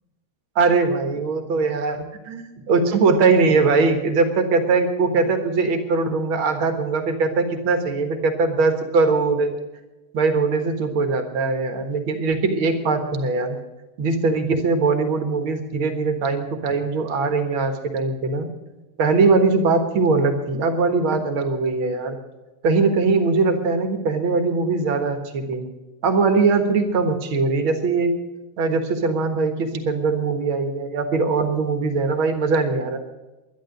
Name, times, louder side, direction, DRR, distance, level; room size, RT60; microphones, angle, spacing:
voice 1, 0.6-9.5 10.1-13.6 14.0-18.5 19.0-22.2 22.6-25.7 26.0-28.2 28.6-33.0, right 4 dB, 70° right, 7 dB, 2.3 m, -21 dB
11.5 x 11.5 x 7.8 m, 1.1 s
omnidirectional pair, 2.4 m